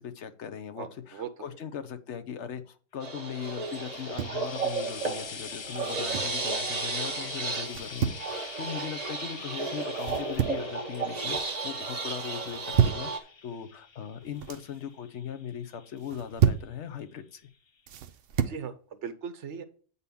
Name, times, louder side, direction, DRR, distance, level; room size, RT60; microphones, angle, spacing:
voice 1, 0.0-17.5, left 8 dB, 75° left, 9 dB, 1.1 m, -39 dB
voice 2, 0.8-1.3 18.4-19.6, right 7 dB, 75° right, 10 dB, 1.1 m, -38 dB
Frying (food), 3.0-16.5 17.4-17.5, left 5 dB, 45° left, 0.3 m, -45 dB
sound 1, 3.0-13.2, right 4 dB, 35° right, 1.2 m, -34 dB
sound 2, 3.9-4.5 5.8-6.4 7.7-8.3 10.0-10.7 11.1-11.6 12.4-13.1 14.1-14.7 16.0-16.7 17.9-18.6, right 8 dB, 60° right, 0.8 m, -29 dB
8.7 x 4.2 x 6.9 m, 0.41 s
omnidirectional pair, 1.2 m